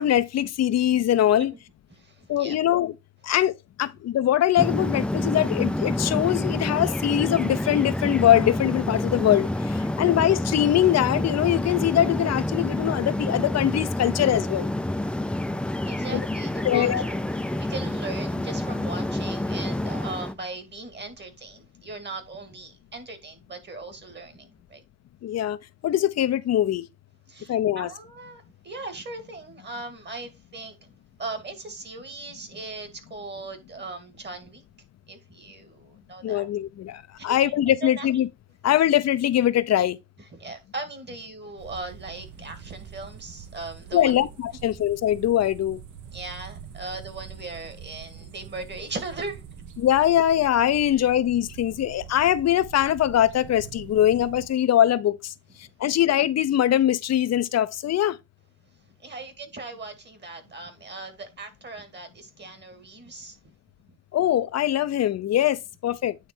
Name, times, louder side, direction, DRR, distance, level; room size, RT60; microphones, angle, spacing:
voice 1, 0.0-1.5 2.3-2.9 3.2-14.7 16.1-16.2 16.6-17.0 25.2-25.6 25.8-26.9 27.5-27.9 36.2-38.3 38.6-40.0 43.9-45.8 49.8-55.3 55.8-58.2 64.1-66.2, left 11 dB, 60° left, 0.7 m, -22 dB
voice 2, 1.9-2.6 15.1-24.8 27.3-30.9 31.2-34.6 35.1-36.7 37.2-37.5 37.8-38.1 40.3-44.3 46.1-49.4 50.9-51.1 55.6-55.7 59.0-63.5, right 3 dB, 35° right, 2.0 m, -39 dB
sound 1, 4.6-20.3, left 1 dB, 5° left, 0.5 m, -28 dB
sound 2, 41.6-54.5, right 8 dB, 75° right, 1.1 m, -44 dB
9.4 x 3.3 x 4.4 m
cardioid pair, 90°, 30 cm